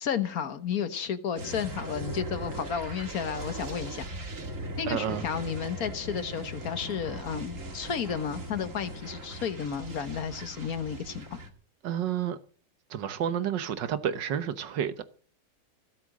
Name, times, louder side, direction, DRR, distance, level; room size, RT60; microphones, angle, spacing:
voice 1, 0.0-4.1 4.8-11.4, left 7 dB, 60° left, 1.5 m, -32 dB
sound 1, 1.3-11.5, right 1 dB, 45° right, 2.5 m, -39 dB
voice 2, 4.9-5.2 11.8-12.4 12.9-15.0, right 9 dB, 85° right, 1.8 m, -30 dB
16.5 x 7.9 x 7.5 m
omnidirectional pair, 1.9 m